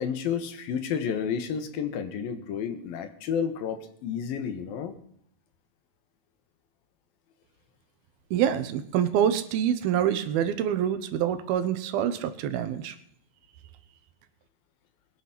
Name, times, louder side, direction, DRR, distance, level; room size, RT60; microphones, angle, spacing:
voice 1, 0.0-5.0, left 7 dB, 75° left, 8 dB, 3.1 m, -31 dB
voice 2, 8.3-13.0, right 9 dB, 80° right, 11 dB, 2.9 m, -26 dB
21.0 x 10.0 x 6.0 m, 0.70 s
omnidirectional pair, 4.3 m